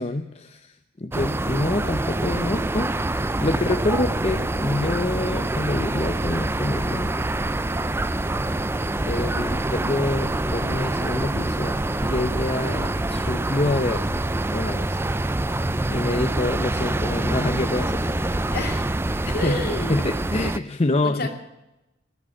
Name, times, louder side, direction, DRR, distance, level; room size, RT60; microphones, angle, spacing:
voice 1, 0.0-7.1 9.1-11.8 12.0-14.2 14.5-15.0 15.9-18.1 19.1-19.6 19.9-21.3, left 2 dB, 30° left, 8 dB, 0.7 m, -27 dB
sound 1, 1.1-20.6, right 2 dB, 10° right, 0.4 m, -25 dB
voice 2, 15.9-16.2 18.5-18.9 19.3-20.1 21.0-21.3, left 2 dB, 50° left, 3 dB, 2.6 m, -31 dB
19.5 x 7.7 x 9.5 m, 0.92 s
head